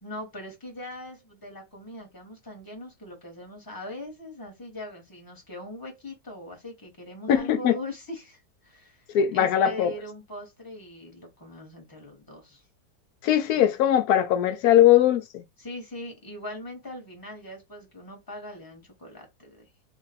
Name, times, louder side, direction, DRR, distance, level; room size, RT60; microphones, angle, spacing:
voice 1, 0.0-9.0 9.3-12.6 13.6-13.7 15.6-19.7, left 1 dB, 15° left, 1.1 m, -41 dB
voice 2, 7.3-7.8 9.1-9.9 13.2-15.4, left 11 dB, 70° left, 1.0 m, -20 dB
3.0 x 2.5 x 4.1 m
omnidirectional pair, 1.9 m